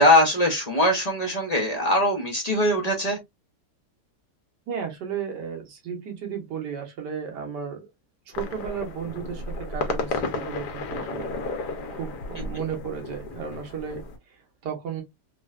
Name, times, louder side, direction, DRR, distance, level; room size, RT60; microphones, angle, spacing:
voice 1, 0.0-3.2, left 1 dB, 50° left, 0.4 m, -21 dB
voice 2, 4.7-7.9 8.3-11.3 12.0-14.0 14.6-15.0, right 7 dB, 85° right, 1.6 m, -34 dB
sound 1, 8.3-14.2, left 3 dB, 75° left, 1.2 m, -33 dB
3.6 x 2.1 x 2.3 m
omnidirectional pair, 1.8 m